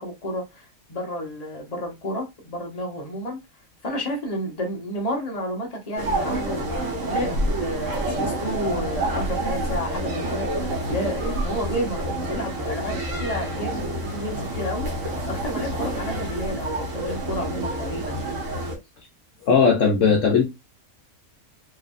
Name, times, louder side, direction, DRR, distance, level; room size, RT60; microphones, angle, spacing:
voice 1, 0.0-3.4 3.8-6.8 7.1-14.9 15.3-18.4, equal, 25° left, 1.3 m, -31 dB
sound 1, 6.0-18.8, right 1 dB, 60° right, 1.6 m, -28 dB
voice 2, 19.4-20.5, left 5 dB, 60° left, 1.1 m, -18 dB
4.8 x 3.3 x 2.5 m
omnidirectional pair, 1.5 m